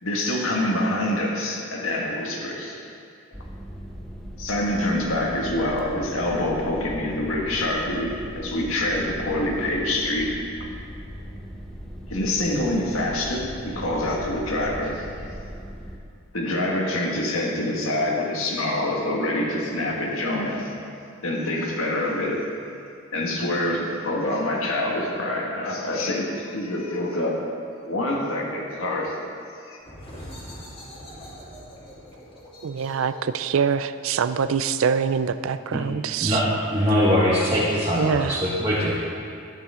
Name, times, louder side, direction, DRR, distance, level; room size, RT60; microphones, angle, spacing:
voice 1, 0.0-2.8 4.4-10.4 12.1-15.0 16.3-20.7 21.2-22.4 23.1-27.4 27.8-29.2 29.6-29.8, left 1 dB, 80° left, -1 dB, 1.8 m, -26 dB
sound 1, 3.3-16.0, equal, ahead, 0.7 m, -39 dB
sound 2, 29.8-35.2, equal, 25° left, 2.3 m, -43 dB
voice 2, 32.6-36.4 38.0-38.4, right 6 dB, 75° right, 13 dB, 0.4 m, -24 dB
voice 3, 36.7-39.0, equal, 25° right, -8 dB, 1.5 m, -22 dB
12.5 x 10.0 x 3.8 m, 2.4 s
head